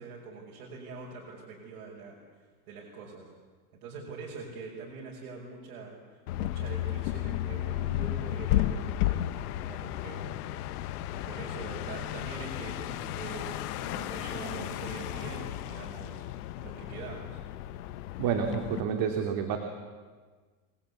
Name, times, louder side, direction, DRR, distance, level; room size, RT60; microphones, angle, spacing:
voice 1, 0.0-2.1 2.7-3.3 3.7-9.2 9.6-10.3 11.2-17.4, right 4 dB, 85° right, -3 dB, 6.3 m, -43 dB
sound 1, 6.3-18.8, left 14 dB, 80° left, 1.4 m, -33 dB
voice 2, 18.2-19.6, right 7 dB, 50° right, 4 dB, 2.8 m, -29 dB
27.5 x 20.5 x 8.5 m, 1.5 s
supercardioid pair, 130°, 45 cm